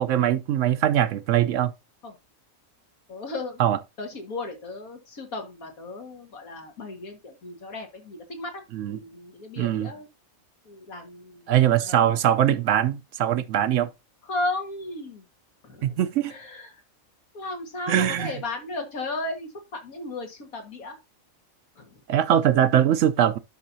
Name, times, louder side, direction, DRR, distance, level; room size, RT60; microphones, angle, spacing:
voice 1, 0.0-1.7 3.6-3.8 8.7-9.0 9.6-9.9 11.5-13.9 15.8-16.3 17.9-18.3 22.1-23.4, right 10 dB, 70° right, 0.9 m, -22 dB
voice 2, 3.1-3.6 4.0-8.6 8.9-10.1 10.7-12.0 14.3-15.2 15.6-16.0 16.3-16.8 17.3-21.0 21.8-22.0, left 2 dB, 85° left, 2.2 m, -35 dB
11.0 x 5.7 x 2.7 m
omnidirectional pair, 1.4 m